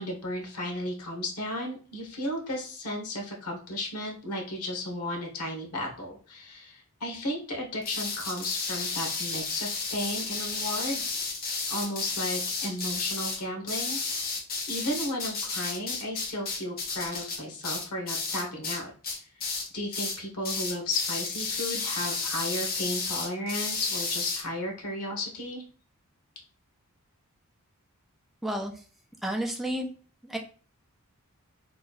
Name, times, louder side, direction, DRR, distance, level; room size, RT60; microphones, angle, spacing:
voice 1, 0.0-11.0 11.7-14.0 14.7-18.9 19.7-25.6, left 1 dB, 90° left, 0 dB, 1.1 m, -34 dB
sound 1, 7.9-18.8 19.0-19.7 19.9-20.2 20.4-24.4, left 4 dB, 40° left, 0.8 m, -32 dB
voice 2, 28.4-28.7 29.2-29.9 30.2-30.4, right 1 dB, ahead, 1 dB, 0.5 m, -31 dB
3.0 x 2.3 x 3.9 m, 0.40 s
head